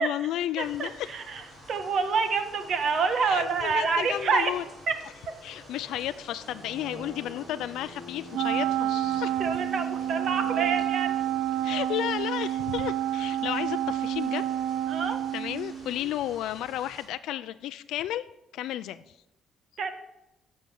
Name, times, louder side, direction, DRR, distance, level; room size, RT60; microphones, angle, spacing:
voice 1, 0.0-1.1 3.2-4.6 5.4-9.4 11.6-14.4 15.3-18.3 18.5-19.0, left 13 dB, 75° left, 11 dB, 0.4 m, -32 dB
sound 1, 0.6-17.0, equal, 20° right, 5.2 m, -48 dB
voice 2, 0.6-1.4 1.7-4.5 9.4-11.3 14.9-15.2 19.8-19.9, right 5 dB, 45° right, 7 dB, 1.3 m, -27 dB
Wind instrument woodwind instrument, 8.3-16.0, right 12 dB, 70° right, 0.3 m, -29 dB
14.5 x 5.6 x 7.0 m, 0.94 s
cardioid pair, 155°, 0 cm